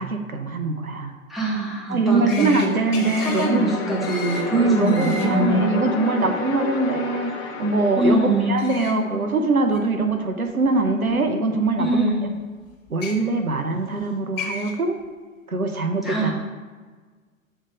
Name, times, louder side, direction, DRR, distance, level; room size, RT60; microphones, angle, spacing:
voice 1, 0.0-1.1 1.9-3.7 4.5-12.0 12.9-15.0 15.5-16.3, right 3 dB, 90° right, 6 dB, 0.8 m, -22 dB
voice 2, 1.3-2.7 3.2-5.6 8.0-8.6 11.8-12.3 16.0-16.3, right 1 dB, ahead, -4 dB, 1.2 m, -23 dB
sound 1, 2.3-2.7 2.9-3.5 4.0-4.4 4.8-5.3 8.6-8.9 9.7-9.8 11.1-11.2 12.9-13.1 14.0-14.1 14.4-14.7, left 3 dB, 60° left, 1.6 m, -33 dB
sound 2, 2.5-9.5, left 5 dB, 35° left, 1.0 m, -32 dB
7.3 x 3.3 x 5.0 m, 1.5 s
figure-of-eight pair, 105°, 42 cm